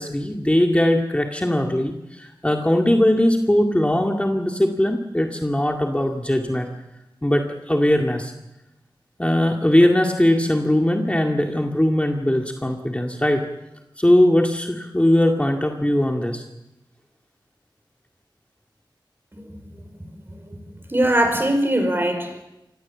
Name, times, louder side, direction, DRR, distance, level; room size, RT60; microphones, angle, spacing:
voice 1, 0.0-6.7 7.2-8.3 9.2-13.5 14.0-16.4, left 1 dB, 15° left, 2 dB, 2.1 m, -20 dB
voice 2, 19.3-20.1 20.5-20.6 20.9-22.4, right 1 dB, 25° right, 6 dB, 5.2 m, -22 dB
26.5 x 18.5 x 7.4 m, 0.93 s
wide cardioid pair, 70°, 8 cm